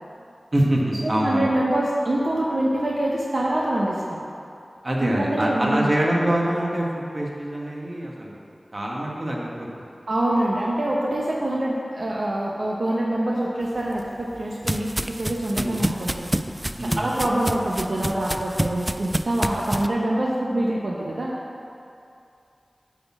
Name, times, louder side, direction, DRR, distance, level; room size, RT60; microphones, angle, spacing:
voice 1, 0.5-1.5 4.8-8.4 8.7-9.9 15.5-15.8 16.8-17.0, right 1 dB, 40° right, -3 dB, 1.6 m, -25 dB
voice 2, 1.0-4.3 5.0-5.9 10.1-16.3 16.8-21.3, right 1 dB, 65° right, -4 dB, 0.9 m, -25 dB
sound 1, 13.8-19.9, right 1 dB, 15° right, 0.3 m, -29 dB
10.0 x 4.3 x 7.3 m, 2.6 s
wide cardioid pair, 60°, 0 cm